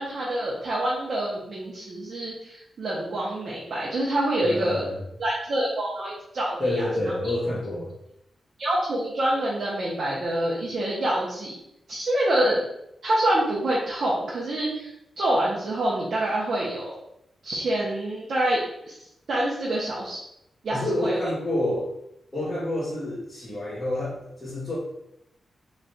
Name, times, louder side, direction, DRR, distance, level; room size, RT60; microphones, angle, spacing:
voice 1, 0.0-4.9 5.2-6.9 8.6-11.6 11.9-12.6 13.0-14.9 15.2-17.0 17.4-19.0 19.3-20.2 20.6-21.2, right 1 dB, 55° right, -5 dB, 0.8 m, -26 dB
voice 2, 4.4-5.0 6.6-7.9 20.7-21.9 22.3-24.8, left 1 dB, 25° left, -9 dB, 0.9 m, -28 dB
3.1 x 2.4 x 4.0 m, 0.80 s
wide cardioid pair, 150°, 0 cm